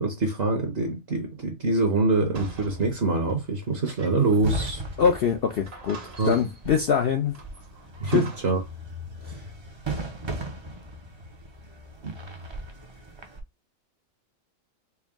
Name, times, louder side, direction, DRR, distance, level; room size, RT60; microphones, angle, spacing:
voice 1, 0.0-4.8 6.2-6.4 8.0-8.6 12.0-12.1, right 3 dB, 55° right, 1.1 m, -25 dB
sound 1, 2.3-5.1 5.3-5.4 5.7-6.8 7.3-8.7, right 3 dB, 80° right, 1.6 m, -44 dB
sound 2, 4.4-13.4, right 1 dB, 30° right, 0.5 m, -38 dB
voice 2, 5.0-7.3 8.0-8.2 9.2-9.3, left 7 dB, 60° left, 0.7 m, -24 dB
4.6 x 2.2 x 3.5 m
omnidirectional pair, 1.3 m